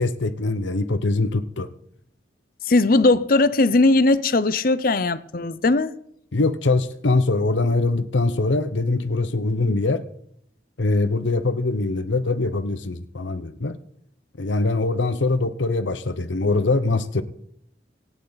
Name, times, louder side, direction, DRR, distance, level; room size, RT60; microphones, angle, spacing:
voice 1, 0.0-1.7 6.3-10.0 10.8-13.8 14.4-17.2, left 3 dB, 85° left, 0.9 m, -23 dB
voice 2, 2.7-5.9, left 2 dB, 50° left, 0.6 m, -18 dB
25.5 x 9.1 x 4.1 m
head